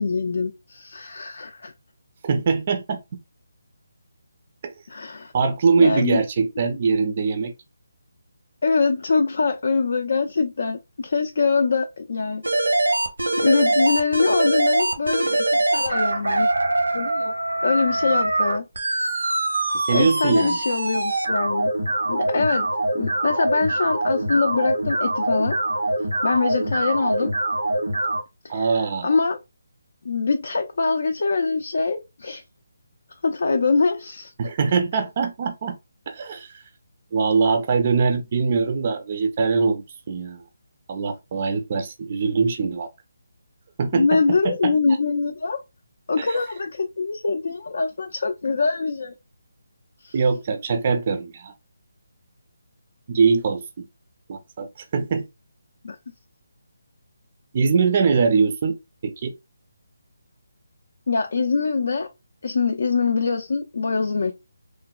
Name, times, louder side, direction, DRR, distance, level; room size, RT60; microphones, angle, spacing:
voice 1, 0.0-1.7 4.9-5.3 5.8-6.2 8.6-12.7 13.4-16.5 16.9-17.3 17.6-18.6 19.5-19.6 19.9-21.7 22.1-22.7 22.9-25.6 26.2-27.3 28.4-29.4 30.0-32.4 33.2-34.3 43.9-45.6 46.1-49.1 50.0-50.2 55.8-56.0 61.1-62.1 62.4-64.3, left 4 dB, 60° left, 0.4 m, -23 dB
voice 2, 2.2-3.0 4.6-4.7 5.3-7.5 19.7-20.6 28.5-29.2 34.4-35.8 36.1-36.5 37.1-40.4 40.9-42.9 43.8-44.7 46.2-46.3 50.1-51.5 53.1-53.8 54.3-55.2 57.5-58.8 59.0-59.3, right 5 dB, 40° right, 0.4 m, -22 dB
sound 1, 12.4-28.2, right 2 dB, 85° right, 0.7 m, -23 dB
3.1 x 2.1 x 2.3 m
figure-of-eight pair, 155°, 0 cm